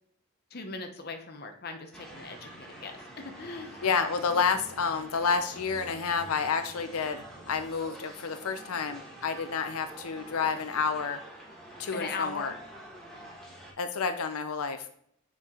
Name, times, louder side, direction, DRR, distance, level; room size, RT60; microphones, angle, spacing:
voice 1, 0.5-3.0 3.4-3.8 11.9-12.6, left 3 dB, 45° left, 5 dB, 0.8 m, -39 dB
sound 1, 1.9-13.7, right 1 dB, 5° left, 1.2 m, -47 dB
voice 2, 3.8-11.2 11.8-12.5 13.8-14.9, left 5 dB, 90° left, 9 dB, 0.6 m, -30 dB
6.8 x 4.5 x 3.7 m, 0.65 s
head